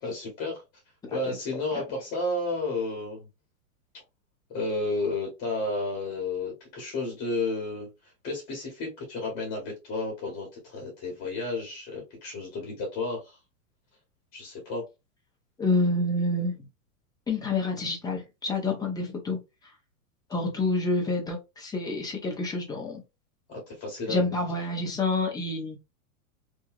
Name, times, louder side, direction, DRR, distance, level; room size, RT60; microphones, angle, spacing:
voice 1, 0.0-0.6 1.1-3.3 4.5-13.4 14.3-14.8 23.5-24.3, left 2 dB, 35° left, 1.3 m, -32 dB
voice 2, 1.0-1.4 15.6-16.6 17.3-19.4 20.3-23.0 24.1-25.8, left 2 dB, 10° left, 0.8 m, -28 dB
2.9 x 2.6 x 2.4 m
hypercardioid pair, 130°, 44 cm